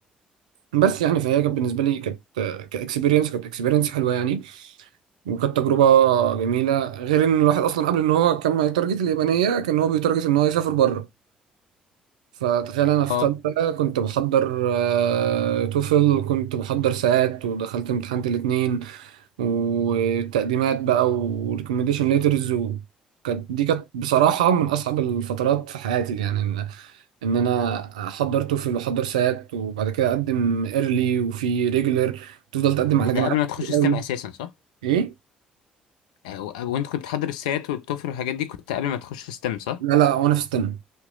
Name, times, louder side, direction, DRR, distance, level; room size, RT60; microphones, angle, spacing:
voice 1, 0.7-4.7 5.3-11.1 12.4-19.1 19.4-22.8 23.2-26.9 27.2-33.3 33.7-34.0 34.8-35.1 39.8-40.8, right 10 dB, 85° right, 0.4 m, -22 dB
voice 2, 32.9-34.5 36.2-39.8, left 11 dB, 80° left, 0.4 m, -28 dB
2.9 x 2.3 x 3.6 m
hypercardioid pair, 50°, 4 cm